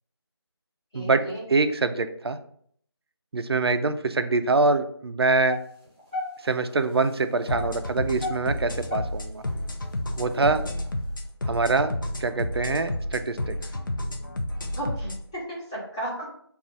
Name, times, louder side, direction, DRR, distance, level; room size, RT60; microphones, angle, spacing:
voice 1, 0.9-1.4 10.4-10.8 14.7-16.3, right 1 dB, 10° left, -8 dB, 0.8 m, -35 dB
voice 2, 1.5-2.4 3.3-5.6 6.4-9.4 10.2-10.6 11.5-11.9 12.2-13.6, right 3 dB, 65° right, 10 dB, 0.4 m, -24 dB
sound 1, 5.5-6.7 7.2-9.5 10.0-10.1 10.7-10.8, left 2 dB, 20° right, 0.9 m, -33 dB
sound 2, 7.5-15.2, left 1 dB, 50° left, 0.4 m, -31 dB
5.3 x 2.4 x 2.5 m, 0.64 s
figure-of-eight pair, 170°, 14 cm